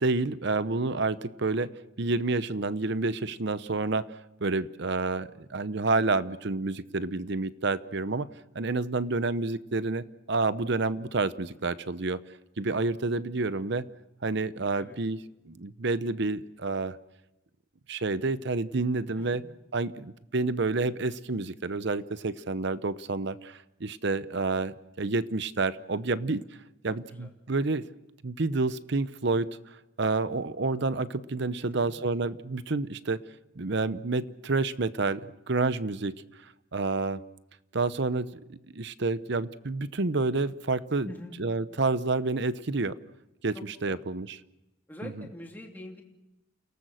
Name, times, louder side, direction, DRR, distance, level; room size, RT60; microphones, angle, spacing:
voice 1, 0.0-8.3 8.5-12.2 12.6-13.9 14.2-17.0 17.9-19.4 19.7-26.4 26.8-27.9 28.2-29.5 30.0-33.2 33.6-36.1 36.4-37.2 37.7-41.1 41.4-42.9 43.4-44.4 45.0-45.3, right 3 dB, 55° right, 15 dB, 0.8 m, -29 dB
voice 2, 31.6-31.9 41.0-41.3 43.5-44.0 44.9-46.0, left 1 dB, 10° left, 0 dB, 2.9 m, -44 dB
29.0 x 18.5 x 6.3 m, 0.94 s
head